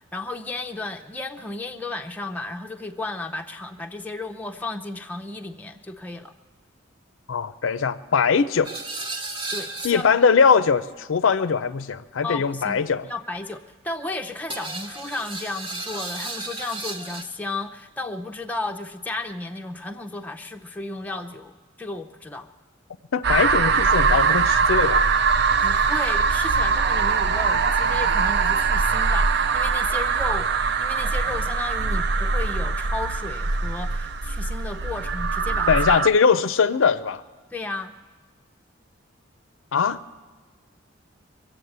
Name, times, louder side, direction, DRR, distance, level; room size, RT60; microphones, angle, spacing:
voice 1, 0.0-6.3 9.5-10.1 12.2-13.6 13.8-22.5 25.6-35.8 37.5-38.0, left 2 dB, 10° left, 3 dB, 0.5 m, -33 dB
voice 2, 7.3-8.7 9.8-13.1 23.1-25.1 35.7-37.2 39.7-40.0, left 5 dB, 70° left, 13 dB, 0.5 m, -21 dB
sound 1, 8.6-10.3 14.5-17.2, right 2 dB, 25° right, 0.9 m, -34 dB
sound 2, 23.2-36.1, right 5 dB, 55° right, 0.5 m, -22 dB
23.0 x 7.8 x 8.0 m, 1.4 s
head